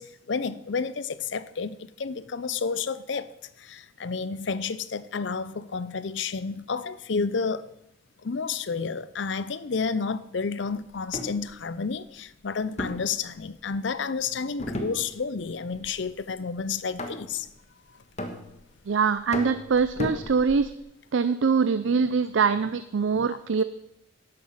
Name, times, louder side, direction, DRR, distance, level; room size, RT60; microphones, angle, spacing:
voice 1, 0.0-3.3 3.6-7.6 8.2-17.5, left 5 dB, 65° left, 0.6 m, -30 dB
sound 1, 11.0-11.4 12.8-13.8 14.6-15.4 15.7-16.1 17.0-17.5 18.2-18.8 19.3-20.8, left 1 dB, 35° left, 1.4 m, -35 dB
voice 2, 18.9-20.7 21.1-23.6, right 5 dB, 70° right, 0.5 m, -23 dB
11.5 x 7.8 x 7.3 m
head